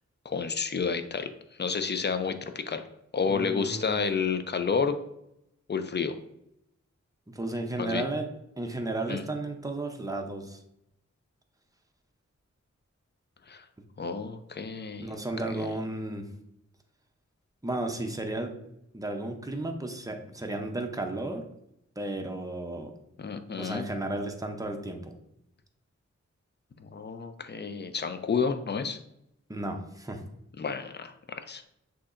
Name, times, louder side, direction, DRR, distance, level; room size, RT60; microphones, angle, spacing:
voice 1, 0.2-1.3 1.6-2.8 3.1-5.0 5.7-6.2 7.8-8.0 9.1-9.3 13.5-13.6 14.0-15.2 15.5-15.7 23.2-23.9 26.8-29.0 30.6-31.7, left 5 dB, 40° left, 9 dB, 0.4 m, -30 dB
voice 2, 3.3-4.0 7.3-8.3 8.6-10.6 15.0-16.3 17.6-18.5 18.9-21.4 22.0-22.9 23.6-25.1 29.5-30.2, right 2 dB, 10° right, 3 dB, 0.6 m, -33 dB
6.2 x 2.8 x 2.5 m, 0.80 s
wide cardioid pair, 75°, 29 cm